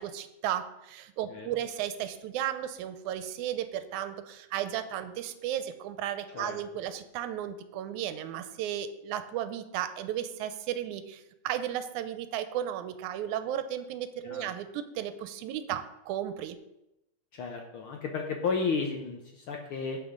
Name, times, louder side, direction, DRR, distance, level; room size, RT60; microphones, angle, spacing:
voice 1, 0.0-16.6, right 11 dB, 90° right, 10 dB, 2.1 m, -34 dB
voice 2, 14.2-14.5 17.3-20.0, left 4 dB, 75° left, 3 dB, 1.2 m, -33 dB
16.0 x 5.3 x 3.8 m, 0.89 s
omnidirectional pair, 3.4 m